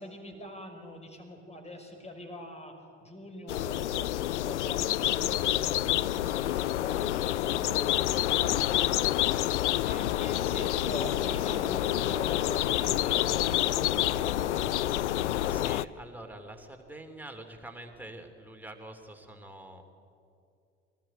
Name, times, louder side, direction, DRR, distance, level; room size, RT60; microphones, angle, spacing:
voice 1, 0.0-7.3 7.6-9.1 9.8-15.1, left 1 dB, 20° left, 4 dB, 5.2 m, -43 dB
sound 1, 3.5-15.8, left 14 dB, 75° left, 0.5 m, -28 dB
voice 2, 9.6-10.1 15.3-19.8, right 1 dB, 5° right, 4 dB, 3.0 m, -46 dB
23.0 x 18.5 x 9.2 m, 2.5 s
figure-of-eight pair, 60°, 35 cm